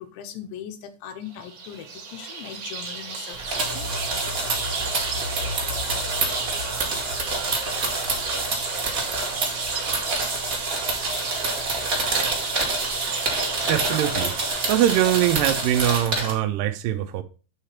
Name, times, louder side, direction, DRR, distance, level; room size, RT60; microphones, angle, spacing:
voice 1, 0.0-3.9, left 9 dB, 85° left, 3.0 m, -39 dB
sound 1, 1.2-14.5, right 5 dB, 55° right, 2.3 m, -35 dB
sound 2, 3.4-16.3, right 3 dB, 35° right, 1.4 m, -27 dB
sound 3, 3.6-11.4 11.7-11.8, left 2 dB, 65° left, 1.4 m, -38 dB
voice 2, 13.7-14.3 14.7-17.2, right 12 dB, 90° right, 1.9 m, -22 dB
8.6 x 3.4 x 5.7 m
omnidirectional pair, 4.9 m